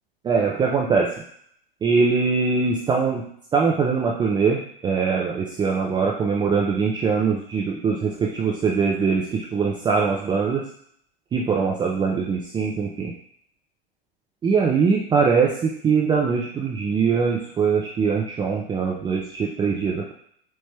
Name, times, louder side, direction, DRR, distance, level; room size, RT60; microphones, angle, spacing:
voice 1, 0.2-1.1 1.8-3.3 3.5-10.7 11.3-13.1 14.4-20.1, right 5 dB, 15° right, -2 dB, 0.4 m, -22 dB
4.4 x 2.1 x 3.2 m, 0.65 s
hypercardioid pair, 95°, 29 cm